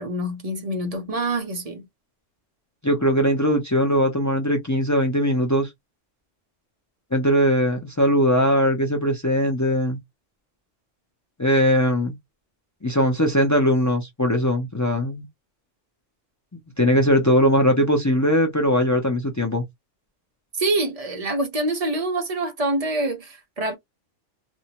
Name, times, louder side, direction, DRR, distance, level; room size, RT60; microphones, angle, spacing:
voice 1, 0.0-1.9 20.5-23.8, right 2 dB, 40° right, 0.5 m, -26 dB
voice 2, 2.8-5.7 7.1-10.0 11.4-12.1 12.8-15.3 16.8-19.6, equal, 25° left, 0.4 m, -20 dB
2.5 x 2.1 x 2.8 m
omnidirectional pair, 1.3 m